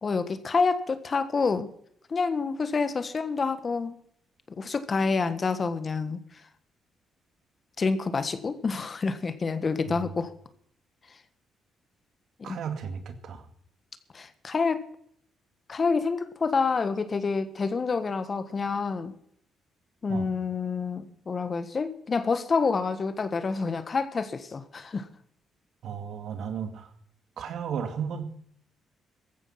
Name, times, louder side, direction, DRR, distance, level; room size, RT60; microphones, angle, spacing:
voice 1, 0.0-1.7 2.1-3.9 4.5-6.2 7.8-10.3 12.5-12.6 14.1-14.8 15.7-19.1 20.0-25.1, left 4 dB, 40° left, 12 dB, 1.5 m, -28 dB
voice 2, 12.4-13.5 20.1-20.3 25.8-26.9 27.4-28.2, right 7 dB, 70° right, 8 dB, 2.2 m, -34 dB
15.0 x 13.5 x 5.9 m, 0.67 s
cardioid pair, 90°, 0 cm